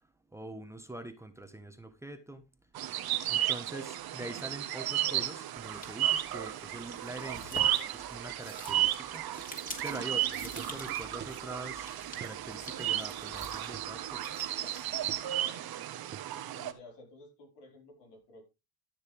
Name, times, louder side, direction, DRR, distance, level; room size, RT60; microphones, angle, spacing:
voice 1, 0.3-2.4 3.3-7.7 7.9-9.2 9.8-14.5, right 2 dB, 5° right, 1.3 m, -44 dB
sound 1, 2.7-16.7, right 12 dB, 60° right, 1.3 m, -34 dB
sound 2, 5.6-15.3, left 2 dB, 20° left, 3.0 m, -49 dB
sound 3, 7.9-8.0 8.3-8.4 8.8-9.0 9.4-9.5 10.0-10.1 10.6-10.8 11.2-11.4 12.2-12.4 13.7-14.0 15.1-15.3 16.1-16.4, right 8 dB, 25° right, 0.6 m, -47 dB
voice 2, 16.5-18.4, left 3 dB, 80° left, 4.9 m, -53 dB
13.5 x 6.7 x 3.4 m
cardioid pair, 95°, 40 cm